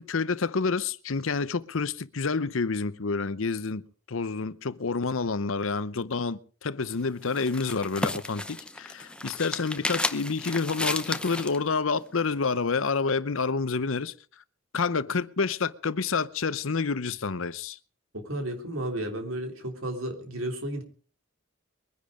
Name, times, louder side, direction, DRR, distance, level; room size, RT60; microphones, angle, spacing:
voice 1, 0.0-3.8 4.1-14.1 14.7-17.8, left 4 dB, 70° left, 0.8 m, -28 dB
sound 1, 6.8-11.6, left 2 dB, 5° left, 0.7 m, -33 dB
voice 2, 18.1-20.8, right 1 dB, 75° right, 3.2 m, -33 dB
22.5 x 10.5 x 5.0 m
head